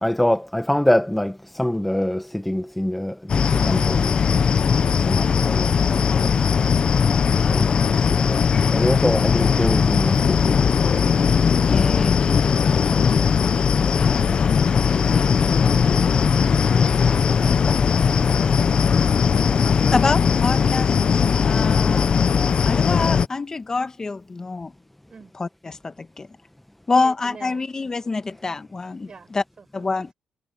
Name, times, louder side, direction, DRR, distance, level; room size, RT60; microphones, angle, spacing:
voice 1, 0.0-4.2 5.0-5.8 6.2-6.3 7.5-7.8 8.2-10.7, left 1 dB, 5° left, 1.1 m, -24 dB
sound 1, 3.3-23.3, left 6 dB, 45° left, 0.7 m, -19 dB
voice 2, 11.7-12.2 19.9-21.0 21.4-22.1 22.6-24.7 25.4-26.3 26.9-29.1 29.3-29.4 29.7-30.1, left 3 dB, 25° left, 1.3 m, -25 dB
voice 3, 15.1-16.9 17.4-18.2 19.3-19.9 25.1-25.3 27.0-27.6 29.0-30.1, right 5 dB, 35° right, 7.3 m, -46 dB
cardioid pair, 100°, 2 cm